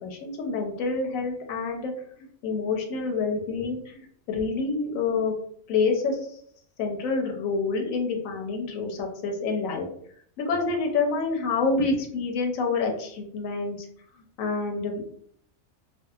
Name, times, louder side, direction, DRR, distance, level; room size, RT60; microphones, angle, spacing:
voice 1, 0.0-5.3 5.7-6.2 6.8-9.9 10.4-13.9 14.4-15.0, left 4 dB, 90° left, 3 dB, 1.0 m, -27 dB
2.7 x 2.3 x 2.3 m, 0.64 s
omnidirectional pair, 1.4 m